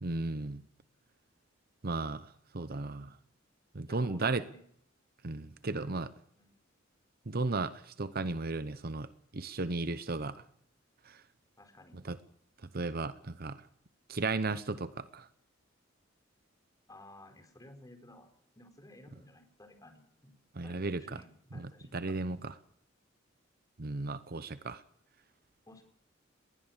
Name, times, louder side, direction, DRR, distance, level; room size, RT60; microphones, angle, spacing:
voice 1, 0.0-0.6 1.8-3.1 3.7-4.4 5.2-6.1 7.3-9.1 9.3-10.4 11.1-11.2 11.9-12.2 12.7-13.6 14.1-15.3 20.6-21.2 21.5-22.5 23.8-24.8, right 3 dB, 50° right, 14 dB, 0.9 m, -35 dB
voice 2, 3.9-4.6 5.6-6.1 6.3-6.5 11.6-12.0 16.9-18.3 18.6-20.3 20.6-22.4 25.7-25.8, left 1 dB, 20° left, 6 dB, 4.5 m, -55 dB
20.5 x 20.0 x 7.4 m, 0.68 s
head